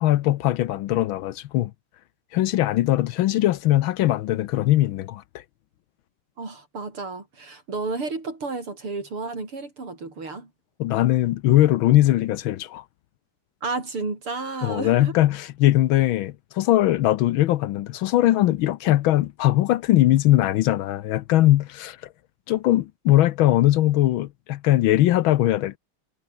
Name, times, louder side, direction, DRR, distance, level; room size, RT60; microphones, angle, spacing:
voice 1, 0.0-1.7 2.3-5.4 10.8-12.8 14.6-22.0 22.5-25.8, left 14 dB, 75° left, 1.4 m, -20 dB
voice 2, 6.4-10.5 13.6-15.1, right 3 dB, 75° right, 6.1 m, -32 dB
omnidirectional pair, 2.4 m